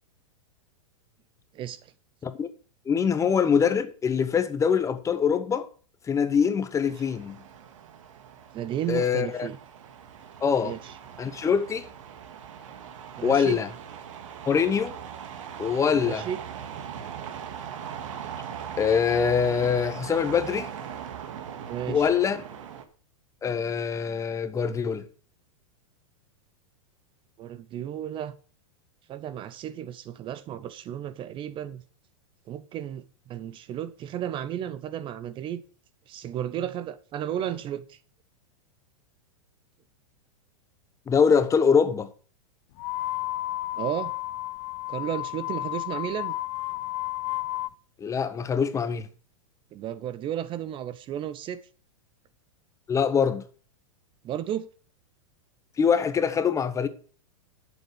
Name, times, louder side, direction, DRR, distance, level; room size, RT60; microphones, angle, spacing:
voice 1, 1.5-1.9 6.8-6.9 8.5-9.6 10.6-10.9 13.2-13.6 15.9-16.4 21.7-22.1 27.4-28.4 29.1-31.8 32.5-35.6 36.1-38.0 43.8-44.1 44.9-46.3 49.7-51.6 54.2-54.7, right 10 dB, 30° right, 0.7 m, -33 dB
voice 2, 2.9-5.7 6.1-7.4 8.9-9.5 10.4-10.7 11.2-11.8 13.2-13.7 14.4-14.9 15.6-16.3 18.8-20.7 21.9-22.4 23.4-25.0 41.1-42.1 48.0-49.1 52.9-53.4 55.8-56.9, left 6 dB, 20° left, 0.9 m, -24 dB
sound 1, 6.9-22.8, right 8 dB, 70° right, 2.0 m, -40 dB
sound 2, 42.8-47.7, left 18 dB, 50° left, 0.5 m, -32 dB
12.0 x 7.2 x 6.2 m
hypercardioid pair, 125°, 17 cm